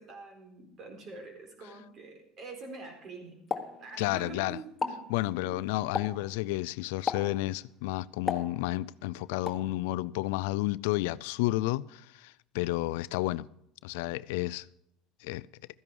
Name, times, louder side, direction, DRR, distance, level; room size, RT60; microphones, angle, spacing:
voice 1, 0.0-5.8, right 3 dB, 45° right, 4.3 m, -46 dB
Explosion, 3.5-4.4 4.7-5.1 6.0-6.3 7.1-7.4 8.3-9.0 9.5-9.7, left 5 dB, 25° left, 1.5 m, -34 dB
voice 2, 4.0-4.6 5.1-13.5 13.8-14.7 15.2-15.5, left 18 dB, 80° left, 0.4 m, -31 dB
14.0 x 10.5 x 4.7 m
supercardioid pair, 100°, 0 cm